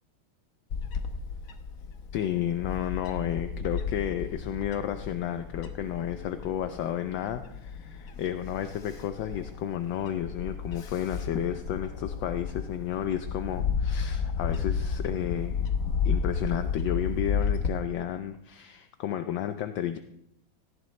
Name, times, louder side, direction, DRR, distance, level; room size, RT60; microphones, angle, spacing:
Bird / Wind, 0.7-17.7, left 6 dB, 50° left, 1.2 m, -33 dB
voice 1, 2.1-15.7 16.0-20.0, left 10 dB, 75° left, 8 dB, 1.4 m, -32 dB
18.0 x 15.0 x 3.2 m, 0.81 s
omnidirectional pair, 2.2 m